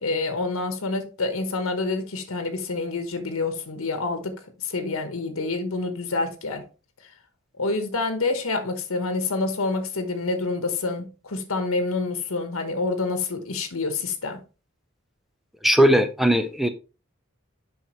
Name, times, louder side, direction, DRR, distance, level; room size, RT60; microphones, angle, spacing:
voice 1, 0.0-6.6 7.6-14.4, left 3 dB, 90° left, 1.1 m, -27 dB
voice 2, 15.6-16.7, equal, ahead, 0.5 m, -18 dB
7.3 x 5.7 x 3.0 m
head